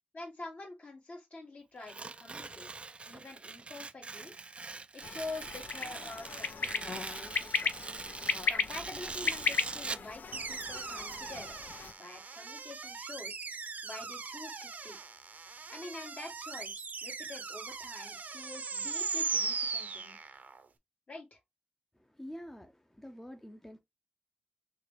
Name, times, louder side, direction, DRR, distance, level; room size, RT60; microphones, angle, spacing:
voice 1, 0.1-2.7 3.1-4.3 4.9-7.7 8.5-11.6 12.0-13.4 13.8-15.0 15.7-20.2 21.1-21.4, left 2 dB, 55° left, 1.7 m, -46 dB
Tearing, 1.8-10.1, right 4 dB, 40° right, 0.3 m, -43 dB
sound 1, 5.0-11.9, left 5 dB, 80° left, 0.5 m, -36 dB
sound 2, 10.3-20.6, right 4 dB, 65° right, 0.7 m, -39 dB
voice 2, 21.9-23.8, equal, 10° left, 0.6 m, -47 dB
6.3 x 2.3 x 3.3 m
wide cardioid pair, 80°, 3 cm